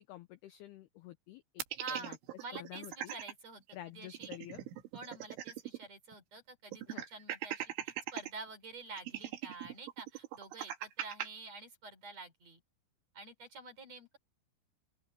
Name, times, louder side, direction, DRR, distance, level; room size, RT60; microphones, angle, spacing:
voice 1, 0.0-2.2 2.5-3.2 3.7-4.6 6.9-7.1, left 14 dB, 85° left, 2.2 m, -50 dB
sound 1, 1.6-3.3 3.7-3.8 4.1-5.8 6.1-6.2 6.7-8.3 9.0-11.3, right 12 dB, 75° right, 4.2 m, -40 dB
voice 2, 1.8-4.3 4.9-12.6 13.1-14.2, right 3 dB, 35° right, 5.0 m, -48 dB
open air
omnidirectional pair, 5.7 m